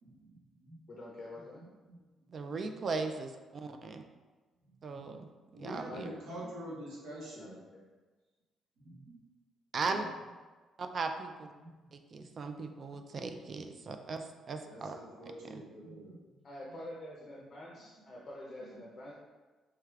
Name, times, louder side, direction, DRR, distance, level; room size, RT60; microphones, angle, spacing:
voice 1, 0.9-1.6 5.9-6.4 7.4-7.8 9.8-10.2 16.4-19.1, left 1 dB, 30° left, -4 dB, 0.6 m, -47 dB
voice 2, 1.6-2.3 4.6-5.2 5.5-7.6 8.8-9.2 9.7-10.1 11.6-13.2 14.6-16.4 17.5-18.1 18.6-19.0, right 1 dB, 85° right, -5 dB, 1.3 m, -48 dB
voice 3, 2.3-4.0 4.8-5.3 5.6-6.1 9.7-10.0 10.8-11.5 11.9-15.0, right 4 dB, 35° right, 6 dB, 0.3 m, -38 dB
4.6 x 3.3 x 2.4 m, 1.3 s
cardioid pair, 150°, 0 cm